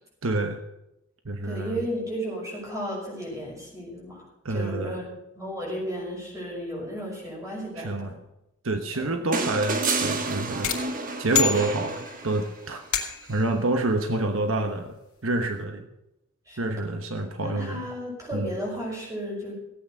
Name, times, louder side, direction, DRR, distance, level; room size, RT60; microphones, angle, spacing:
voice 1, 0.2-0.6 1.2-1.9 4.4-5.0 7.8-8.1 8.6-10.7 11.2-15.9 16.6-17.9 18.3-18.5, right 2 dB, 70° right, 6 dB, 1.2 m, -28 dB
voice 2, 1.4-4.2 4.5-5.1 5.3-8.1 9.0-9.2 16.5-16.7 17.4-19.5, equal, 15° right, -2 dB, 6.1 m, -34 dB
sound 1, 9.3-12.7 14.2-14.3, right 3 dB, 40° right, 1.4 m, -29 dB
sound 2, 10.6-12.3 12.9-13.5, left 7 dB, 90° left, 2.6 m, -28 dB
16.0 x 8.8 x 6.6 m, 0.89 s
head